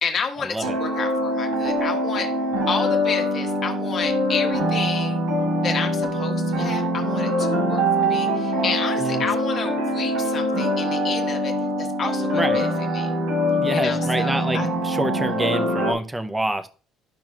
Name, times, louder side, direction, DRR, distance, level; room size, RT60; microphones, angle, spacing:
voice 1, 0.0-2.3 2.7-5.2 5.6-13.1 13.7-14.7, left 5 dB, 30° left, 3 dB, 1.4 m, -30 dB
sound 1, 0.6-15.9, equal, 80° right, 2.7 m, -23 dB
voice 2, 13.6-16.7, right 1 dB, 5° right, 10 dB, 0.6 m, -27 dB
12.0 x 6.1 x 2.4 m, 0.37 s
cardioid pair, 165°, 0 cm